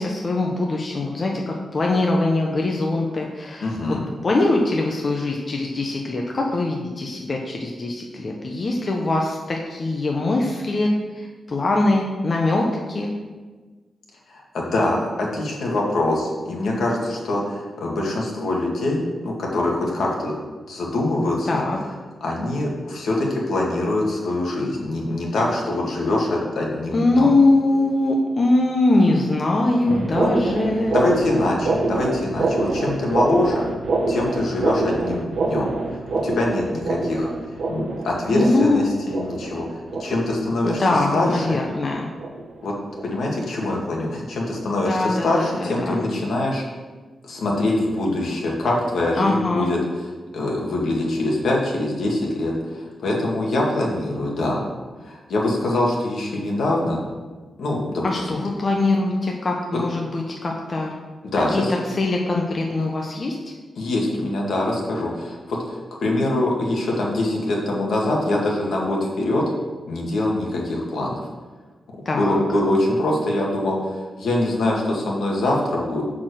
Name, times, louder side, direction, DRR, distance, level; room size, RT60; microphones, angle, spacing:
voice 1, 0.0-4.0 4.2-13.1 21.5-21.8 26.9-31.0 38.3-38.8 40.6-42.1 44.9-46.0 49.2-49.7 58.0-60.9 61.5-63.4 72.0-72.4, left 2 dB, 30° left, 0 dB, 0.8 m, -22 dB
voice 2, 3.6-4.0 14.5-20.3 20.7-21.6 22.2-27.3 30.2-30.3 30.9-33.6 34.1-35.7 36.2-37.3 37.7-40.9 41.1-41.6 42.6-42.7 43.0-46.6 47.2-49.8 50.3-54.6 55.0-57.0 57.6-58.4 61.2-61.7 63.8-69.4 69.9-71.3 72.2-76.0, left 1 dB, 75° left, -2 dB, 2.0 m, -24 dB
sound 1, 29.9-42.6 42.9-43.3 43.7-44.0 44.4-44.6 45.2-45.3 45.9-46.0, right 3 dB, 55° right, 1.0 m, -26 dB
6.6 x 6.0 x 6.2 m, 1.3 s
wide cardioid pair, 165°, 0 cm